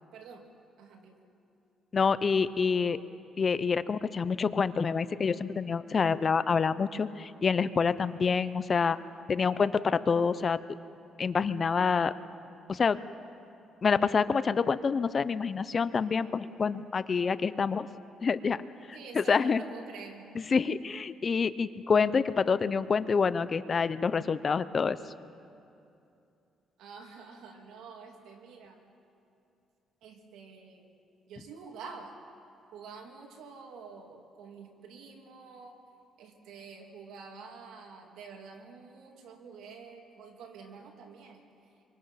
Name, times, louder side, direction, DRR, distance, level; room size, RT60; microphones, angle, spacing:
voice 1, 0.1-0.5 0.8-1.2 18.9-20.3 26.8-28.8 30.0-30.9 31.3-32.2 32.7-35.8 36.2-41.4, right 5 dB, 85° right, 2 dB, 3.0 m, -48 dB
voice 2, 1.9-3.0 3.4-9.0 9.3-10.6 11.2-12.1 12.7-13.0 13.8-17.9 18.2-18.6 18.9-19.6 20.3-25.0, left 5 dB, 40° left, 14 dB, 0.8 m, -27 dB
26.0 x 25.0 x 5.9 m, 2.6 s
cardioid pair, 90°, 0 cm